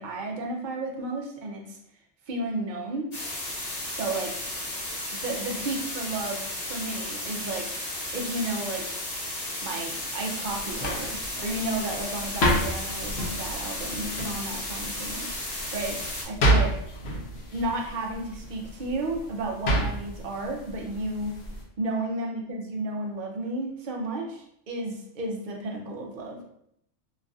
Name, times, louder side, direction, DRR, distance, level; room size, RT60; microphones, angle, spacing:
voice 1, 0.0-1.8 2.3-3.1 3.9-4.3 5.2-7.7 8.1-8.9 9.6-15.3 15.7-16.0 16.2-16.8 17.5-21.4 21.8-26.4, right 2 dB, 55° right, 0 dB, 0.6 m, -32 dB
sound 1, 3.1-16.3, left 1 dB, 40° left, 0.7 m, -34 dB
sound 2, 10.4-21.6, right 1 dB, 65° left, 0.9 m, -30 dB
3.1 x 2.5 x 2.3 m, 0.73 s
omnidirectional pair, 1.3 m